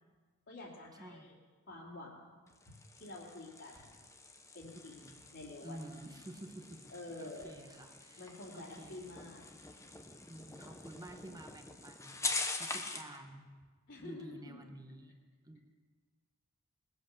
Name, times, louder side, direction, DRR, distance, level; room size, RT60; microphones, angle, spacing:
voice 1, 0.5-1.4 1.7-2.4 3.0-4.0 4.5-5.9 6.9-7.6 8.2-9.4 13.9-14.6, left 2 dB, 60° left, -7 dB, 2.8 m, -49 dB
voice 2, 1.0-1.3 4.9-5.2 5.6-6.9 7.2-9.1 10.3-13.5 14.0-15.1 15.4-15.6, right 1 dB, 20° right, 5 dB, 1.1 m, -50 dB
sound 1, 2.5-13.2, left 3 dB, 15° left, 0.9 m, -44 dB
19.5 x 8.1 x 6.6 m, 1.5 s
head